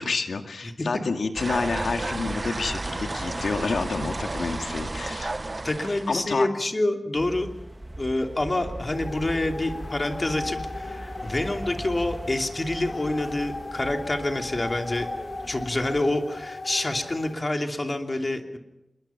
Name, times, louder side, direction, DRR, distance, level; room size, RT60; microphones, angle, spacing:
voice 1, 0.0-5.3 6.1-6.5, left 4 dB, 90° left, 6 dB, 2.1 m, -29 dB
sound 1, 1.3-6.4, right 2 dB, 35° right, 0.8 m, -32 dB
voice 2, 5.6-7.5 8.0-15.1 15.5-18.6, left 2 dB, 35° left, 4 dB, 2.9 m, -27 dB
sound 2, 7.2-16.0, right 1 dB, 15° right, 1.9 m, -40 dB
sound 3, 8.9-17.3, left 3 dB, 55° left, 5.1 m, -37 dB
26.5 x 22.0 x 5.8 m, 0.91 s
wide cardioid pair, 85°, 0 cm